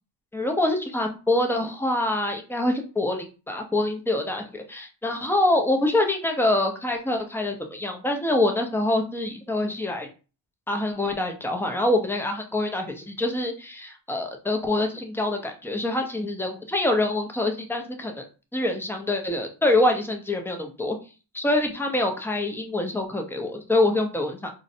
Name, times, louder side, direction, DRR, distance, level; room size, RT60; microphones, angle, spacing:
voice 1, 0.3-10.1 10.7-18.2 18.5-21.0 21.3-24.6, left 2 dB, 5° left, 3 dB, 0.5 m, -25 dB
3.8 x 2.1 x 2.6 m, 0.34 s
cardioid pair, 95°, 45 cm